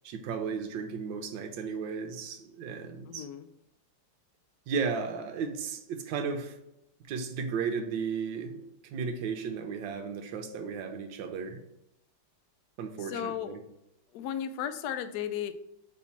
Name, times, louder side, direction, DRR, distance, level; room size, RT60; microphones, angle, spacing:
voice 1, 0.0-3.3 4.7-6.6 7.1-8.6 8.8-11.6 12.8-13.6, right 5 dB, 70° right, 1.4 m, -34 dB
voice 2, 3.1-3.5 13.0-13.6 14.1-15.5, left 9 dB, 85° left, 0.8 m, -35 dB
4.3 x 4.2 x 5.7 m
omnidirectional pair, 2.3 m